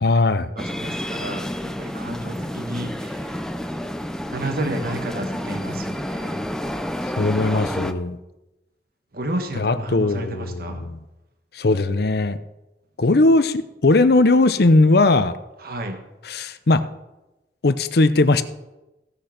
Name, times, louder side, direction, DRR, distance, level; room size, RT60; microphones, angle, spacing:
voice 1, 0.0-0.5 7.2-8.2 9.6-11.0 11.5-12.4 13.0-15.3 16.3-16.8 17.6-18.4, left 2 dB, 60° left, 12 dB, 0.7 m, -18 dB
voice 2, 0.5-3.8 4.3-6.5 9.1-10.8 15.6-16.0, right 1 dB, 60° right, 6 dB, 1.3 m, -32 dB
sound 1, 0.6-7.9, equal, 5° left, 0.6 m, -29 dB
16.0 x 6.6 x 5.9 m, 0.99 s
head